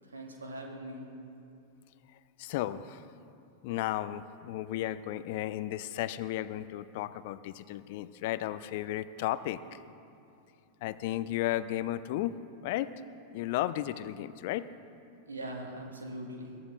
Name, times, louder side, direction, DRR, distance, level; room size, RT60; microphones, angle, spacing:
voice 1, 0.0-1.1 15.3-16.5, right 1 dB, 75° right, 1 dB, 2.4 m, -41 dB
voice 2, 2.4-3.0 3.6-9.8 10.8-12.4 12.6-12.9 13.3-14.7, left 14 dB, 50° left, 15 dB, 0.5 m, -34 dB
22.0 x 14.0 x 3.8 m, 2.7 s
figure-of-eight pair, 90°, 0 cm